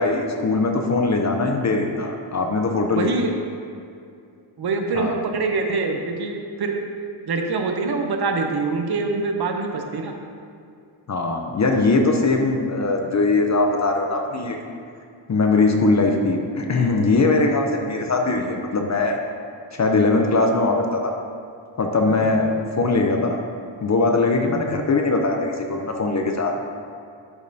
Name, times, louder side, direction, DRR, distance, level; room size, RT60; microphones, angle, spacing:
voice 1, 0.0-3.1 4.9-5.1 11.1-14.6 15.3-19.2 19.7-21.2 21.8-22.5 22.8-23.4 23.8-26.6, left 3 dB, 35° left, 3 dB, 0.5 m, -21 dB
voice 2, 3.0-3.3 4.6-6.8 7.3-10.2 22.1-22.5 24.4-24.8, right 3 dB, 55° right, 4 dB, 0.7 m, -25 dB
11.0 x 5.2 x 2.6 m, 2.4 s
wide cardioid pair, 170°, 48 cm